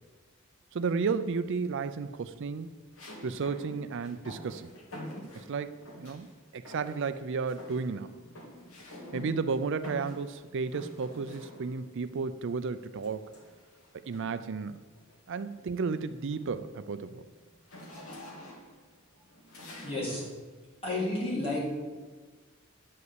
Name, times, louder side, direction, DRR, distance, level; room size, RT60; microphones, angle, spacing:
voice 1, 0.7-2.7 3.2-4.7 5.3-6.3 6.5-8.1 9.1-13.2 14.1-14.9 15.3-17.3, right 5 dB, 60° right, 12 dB, 0.4 m, -33 dB
sound 1, 1.1-1.6 3.0-6.3 6.7-7.2 7.5-11.9 13.0-14.4 14.9-15.2 15.6-20.3, equal, 85° left, 2.2 m, -47 dB
voice 2, 19.8-20.2 20.8-21.7, left 2 dB, 30° left, -7 dB, 3.8 m, -31 dB
10.5 x 5.4 x 8.1 m, 1.4 s
head